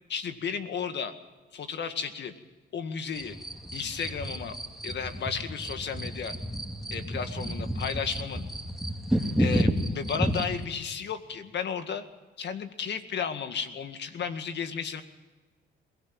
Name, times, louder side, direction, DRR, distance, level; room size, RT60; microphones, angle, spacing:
voice 1, 0.1-1.1 1.5-2.3 2.7-3.4 3.7-4.5 4.8-6.3 6.9-8.5 9.4-12.1 12.4-15.0, left 7 dB, 60° left, 8 dB, 2.0 m, -33 dB
sound 1, 3.1-10.6, equal, ahead, 2.7 m, -31 dB
22.5 x 17.5 x 8.9 m, 1.3 s
supercardioid pair, 65°, 20 cm